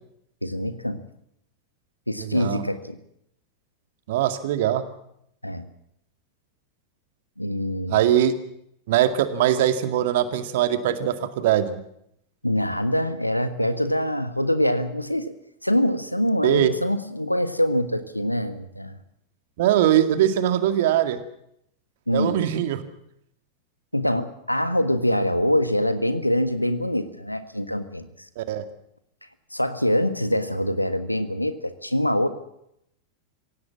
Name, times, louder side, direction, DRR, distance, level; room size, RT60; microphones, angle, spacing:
voice 1, 0.4-1.0 2.1-3.0 5.4-5.7 7.4-8.0 12.4-15.3 15.6-18.9 22.1-22.4 23.9-28.1 29.5-32.3, left 1 dB, 90° left, 11 dB, 1.5 m, -24 dB
voice 2, 2.2-2.6 4.1-4.8 7.9-8.3 8.9-11.8 16.4-16.7 19.6-21.2 22.1-22.8 28.4-28.6, right 11 dB, 55° right, 9 dB, 2.1 m, -21 dB
25.5 x 17.0 x 7.4 m, 0.76 s
figure-of-eight pair, 90°, 0 cm